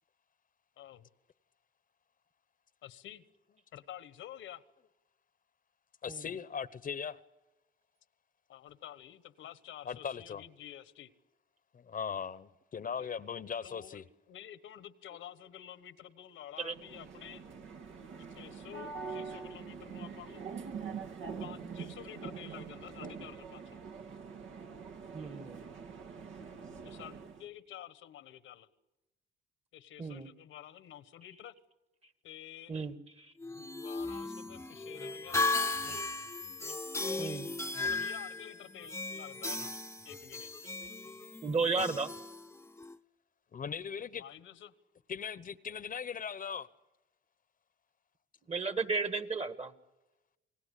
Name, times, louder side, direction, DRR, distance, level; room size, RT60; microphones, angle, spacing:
voice 1, 0.8-1.1 2.8-3.2 3.7-4.6 8.5-11.1 13.0-13.1 13.6-14.0 14.3-17.4 18.3-20.4 21.4-23.8 26.8-28.7 29.7-31.5 32.2-32.7 33.5-36.1 37.0-37.4 37.8-39.8 40.0-40.6 44.1-44.7, left 11 dB, 80° left, 1.3 m, -50 dB
voice 2, 6.0-7.2 9.8-10.4 11.7-14.0 43.5-44.2 45.1-46.7, left 7 dB, 45° left, 1.0 m, -39 dB
sound 1, 16.6-27.5, right 5 dB, 80° right, 2.0 m, -44 dB
voice 3, 25.1-25.6 30.0-30.3 32.7-33.3 37.2-37.5 41.4-42.1 48.5-49.7, right 4 dB, 30° right, 1.8 m, -34 dB
sound 2, 33.4-42.9, left 3 dB, 15° left, 0.9 m, -36 dB
29.0 x 19.5 x 8.3 m
cardioid pair, 90°, 20 cm